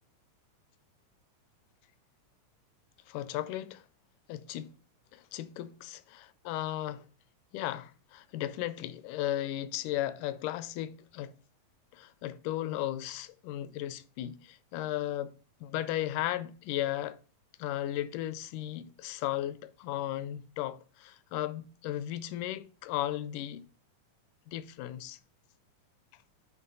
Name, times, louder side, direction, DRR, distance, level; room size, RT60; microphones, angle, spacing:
voice 1, 3.1-3.9 4.3-4.7 5.1-7.0 7.5-11.3 11.9-15.3 15.6-17.2 17.6-23.6 24.5-25.2, left 13 dB, 80° left, 1.9 m, -35 dB
8.3 x 3.5 x 5.3 m
omnidirectional pair, 3.8 m